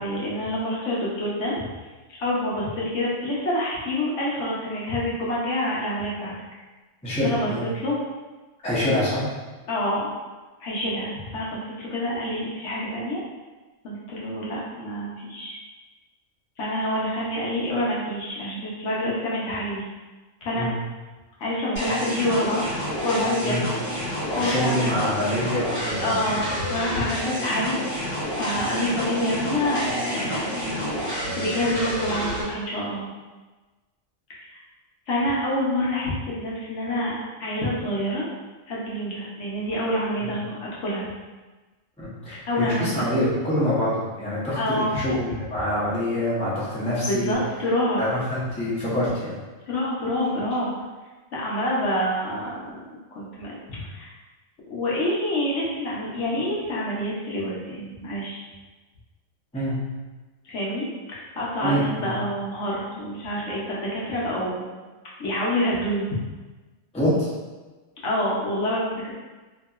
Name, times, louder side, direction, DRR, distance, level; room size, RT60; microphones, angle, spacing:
voice 1, 0.0-1.6 2.2-6.3 7.2-8.0 9.7-10.1 10.6-13.2 13.8-15.6 16.6-19.8 20.4-20.7 21.4-22.6 23.0-23.6 23.8-24.9 26.0-33.0 34.4-34.6 35.1-38.3 38.7-41.1 42.5-43.1 44.6-45.0 47.0-48.0 49.7-50.7 51.3-52.8 53.1-54.1 54.7-58.4 60.4-64.6 65.2-66.1 68.0-69.1, left 1 dB, 65° left, -5 dB, 1.0 m, -27 dB
voice 2, 7.0-7.6 8.6-9.3 20.5-20.7 23.4-23.6 24.3-26.1 40.2-40.3 42.0-47.3 48.0-49.4 59.5-59.8 61.6-62.1 66.9-67.3, left 1 dB, 5° left, -9 dB, 0.5 m, -25 dB
sound 1, 21.8-32.4, equal, 45° right, 1.5 m, -29 dB
2.8 x 2.7 x 2.3 m, 1.2 s
omnidirectional pair, 1.4 m